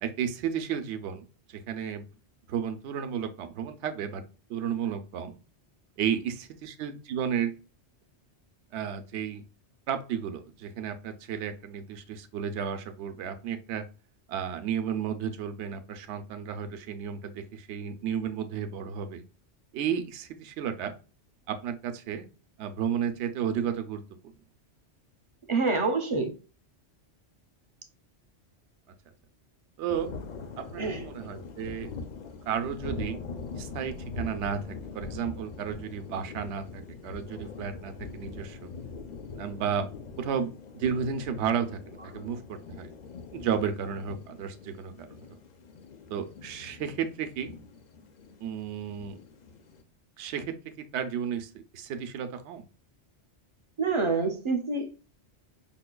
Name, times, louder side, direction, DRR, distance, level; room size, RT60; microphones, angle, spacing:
voice 1, 0.0-2.0 2.5-4.2 4.5-5.4 6.0-7.6 8.7-9.4 9.9-13.8 14.3-19.2 19.7-20.9 21.5-22.3 22.6-24.0 29.8-30.1 30.6-31.9 32.4-33.2 33.6-38.7 39.4-39.9 40.2-42.9 43.3-45.4 46.1-47.5 48.4-49.2 50.2-52.7, right 8 dB, 75° right, 8 dB, 0.9 m, -33 dB
voice 2, 25.5-26.3 30.8-31.0 53.8-54.9, right 4 dB, 35° right, 5 dB, 0.5 m, -27 dB
sound 1, 29.9-49.8, left 4 dB, 55° left, 0.5 m, -42 dB
5.6 x 2.2 x 2.2 m, 0.34 s
omnidirectional pair, 1.2 m